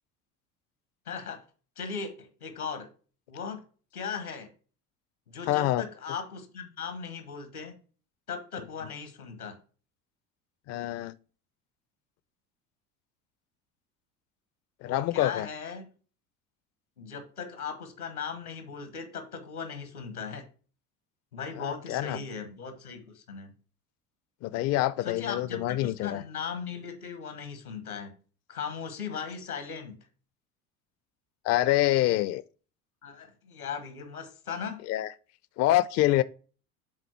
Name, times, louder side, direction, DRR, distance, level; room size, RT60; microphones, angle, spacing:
voice 1, 1.1-1.4 1.8-2.9 3.3-3.6 3.9-4.5 5.3-7.7 8.3-9.6 14.8-15.9 17.0-20.4 21.3-23.5 25.0-28.1 28.5-30.0 33.0-34.8, left 6 dB, 90° left, 1.4 m, -38 dB
voice 2, 5.5-5.8 10.7-11.1 14.8-15.5 21.6-22.2 24.4-26.2 31.4-32.4 34.9-35.1 35.6-36.2, left 15 dB, 40° left, 0.4 m, -26 dB
7.3 x 3.9 x 4.5 m
figure-of-eight pair, 65°, 43 cm